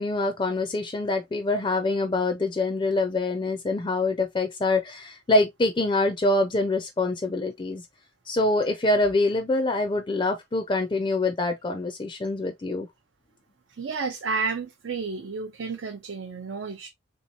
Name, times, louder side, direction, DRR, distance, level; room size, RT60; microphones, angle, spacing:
voice 1, 0.0-7.8 8.3-12.9, left 2 dB, 25° left, 0.4 m, -25 dB
voice 2, 13.7-16.9, right 4 dB, 75° right, 0.5 m, -31 dB
3.4 x 2.9 x 2.6 m
head